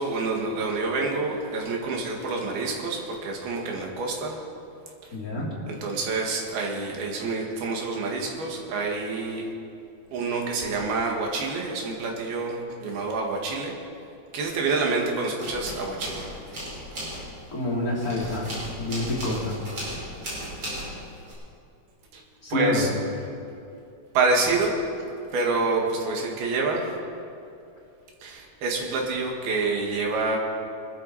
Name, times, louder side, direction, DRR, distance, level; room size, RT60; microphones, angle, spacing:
voice 1, 0.0-4.4 5.0-5.2 5.7-9.5 10.1-13.7 14.3-16.4 22.1-22.2 22.5-22.9 23.4-23.5 24.1-24.8 25.3-27.0 28.2-30.4, right 3 dB, 90° right, 0 dB, 4.0 m, -27 dB
voice 2, 5.1-5.5 17.5-18.5 18.8-19.6 22.4-22.8, left 2 dB, 25° left, -5 dB, 3.4 m, -27 dB
sound 1, 14.5-15.0 15.3-21.3, equal, 35° right, 6.0 m, -36 dB
24.0 x 13.0 x 4.3 m, 2.6 s
omnidirectional pair, 4.2 m